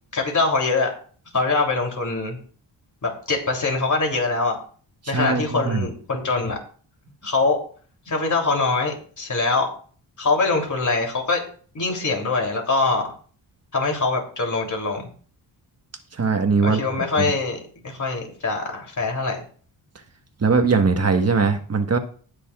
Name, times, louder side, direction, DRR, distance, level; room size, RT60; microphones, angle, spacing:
voice 1, 0.1-0.9 1.3-2.4 3.0-4.6 5.1-6.6 7.2-7.6 8.1-9.7 10.2-11.4 11.7-13.1 13.7-15.1 16.6-19.4, left 3 dB, 40° left, 1 dB, 3.2 m, -23 dB
voice 2, 5.0-5.9 16.1-16.8 17.2-17.3 20.4-22.0, right 4 dB, 35° right, 6 dB, 1.4 m, -20 dB
19.0 x 6.9 x 2.4 m, 0.44 s
cardioid pair, 100°, 44 cm